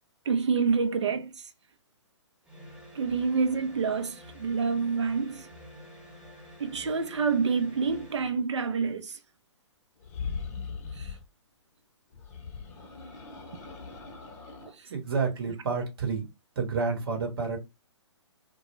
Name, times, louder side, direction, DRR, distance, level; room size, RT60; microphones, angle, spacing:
voice 1, 0.3-1.3 3.0-5.4 6.6-9.1, right 5 dB, 75° right, 0.5 m, -27 dB
sound 1, 2.4-8.4, equal, 5° right, 0.6 m, -49 dB
sound 2, 10.0-11.3 12.1-14.7, left 5 dB, 35° left, 0.7 m, -39 dB
voice 2, 14.9-16.3 16.6-17.6, right 5 dB, 50° right, 1.0 m, -29 dB
2.2 x 2.1 x 3.0 m
figure-of-eight pair, 130°, 15 cm